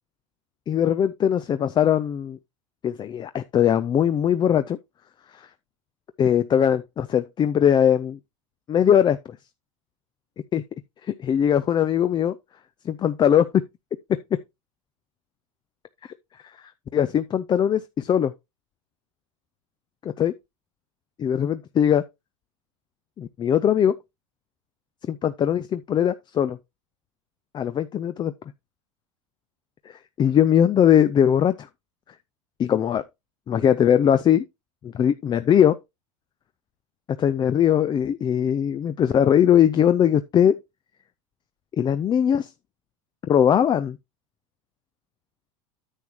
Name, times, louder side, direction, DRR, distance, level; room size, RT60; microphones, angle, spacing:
voice 1, 0.7-2.4 2.8-4.8 6.2-8.2 8.7-9.2 10.5-10.6 11.2-12.3 12.9-13.6 16.9-18.3 20.2-20.3 21.2-22.0 23.2-23.9 25.1-26.6 27.5-28.3 30.2-31.5 32.6-33.0 33.5-34.4 34.8-35.8 37.2-40.6 41.8-42.5 43.3-44.0, left 9 dB, 25° left, 0.5 m, -20 dB
9.8 x 7.1 x 2.9 m
hypercardioid pair, 105°, 17 cm